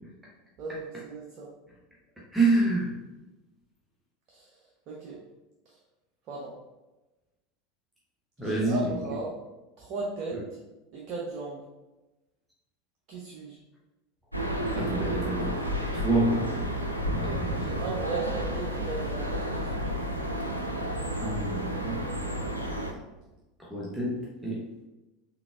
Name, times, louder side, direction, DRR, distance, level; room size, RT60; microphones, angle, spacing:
voice 1, 0.6-1.5 4.3-4.5 4.9-5.2 6.3-6.6 8.4-9.3 9.8-10.6 10.9-11.6 13.1-13.6 17.1-19.9, right 3 dB, 45° right, -3 dB, 0.6 m, -37 dB
voice 2, 2.3-3.0 8.4-8.8 10.3-10.4 14.7-15.6 15.9-16.6 17.1-17.6 21.2-22.0 23.6-24.7, right 2 dB, 5° right, -6 dB, 0.8 m, -27 dB
sound 1, 14.3-22.9, equal, 90° right, 0.4 m, -31 dB
3.9 x 3.5 x 2.3 m, 1.0 s
figure-of-eight pair, 80°, 0 cm